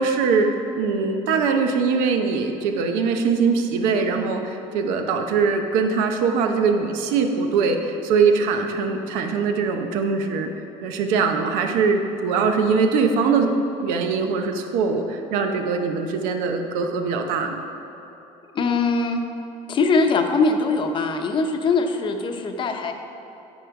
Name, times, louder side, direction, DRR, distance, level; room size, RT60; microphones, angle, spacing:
voice 1, 0.0-10.5 10.8-17.6, right 5 dB, 85° right, 5 dB, 0.8 m, -22 dB
voice 2, 18.5-19.2 19.7-22.9, left 3 dB, 40° left, 5 dB, 0.8 m, -21 dB
9.1 x 5.6 x 4.7 m, 3.0 s
cardioid pair, 120°, 13 cm